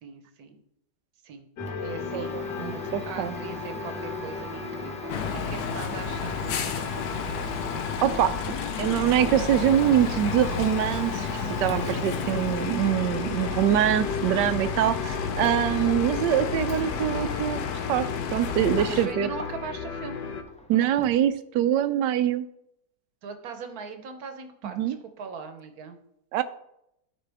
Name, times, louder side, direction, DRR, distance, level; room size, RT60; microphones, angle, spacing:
voice 1, 0.0-0.6 1.2-1.5 1.8-6.5 18.8-20.2 23.2-26.0, right 5 dB, 60° right, 7 dB, 1.4 m, -40 dB
sound 1, 1.6-20.4, left 6 dB, 90° left, 1.5 m, -36 dB
Domestic sounds home sounds, 1.6-19.9 20.2-21.3, equal, 10° left, 0.4 m, -42 dB
voice 2, 2.1-3.4 8.0-8.3 8.8-17.6 17.9-19.3 20.7-22.5 24.6-25.0 26.3-26.4, right 10 dB, 80° right, 13 dB, 1.2 m, -24 dB
sound 2, 5.1-19.1, left 6 dB, 65° left, 1.2 m, -31 dB
13.5 x 4.9 x 3.5 m, 0.78 s
omnidirectional pair, 1.9 m